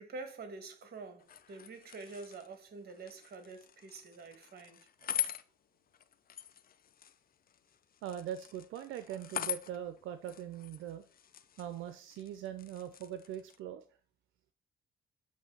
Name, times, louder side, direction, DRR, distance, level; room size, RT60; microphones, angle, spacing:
voice 1, 0.0-4.9, right 3 dB, 50° right, 1.7 m, -47 dB
sound 1, 1.2-13.6, left 10 dB, 50° left, 0.6 m, -44 dB
voice 2, 8.0-11.0 11.6-13.8, right 10 dB, 90° right, 0.5 m, -41 dB
7.6 x 3.1 x 5.3 m
cardioid pair, 90°, 20 cm